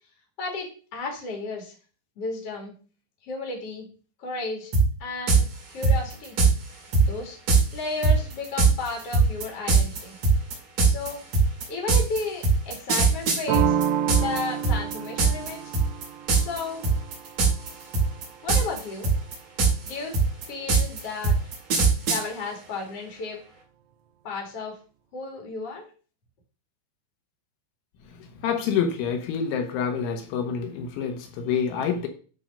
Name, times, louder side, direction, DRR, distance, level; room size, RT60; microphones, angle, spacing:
voice 1, 0.4-1.7 2.2-2.7 3.2-3.8 4.2-4.7 5.0-6.4 7.0-7.4 7.7-10.2 10.8-11.2 11.7-13.8 14.2-15.7 16.4-16.9 18.4-19.1 19.9-20.2 20.5-21.4 22.1-23.4 24.2-24.8 25.1-25.8, left 3 dB, 45° left, 0 dB, 2.2 m, -33 dB
sound 1, 4.7-4.8 5.3-5.4 5.8-6.5 6.9-7.1 7.5-7.6 8.0-14.4 14.6-15.5 15.7-16.0 16.3-16.6 16.8-17.7 17.9-18.8 19.0-22.2, right 4 dB, 45° right, 3.0 m, -19 dB
sound 2, 13.5-19.0, right 9 dB, 85° right, 3.1 m, -30 dB
voice 2, 28.4-32.1, left 7 dB, 75° left, 4 dB, 3.4 m, -27 dB
10.5 x 3.7 x 5.4 m, 0.39 s
omnidirectional pair, 5.6 m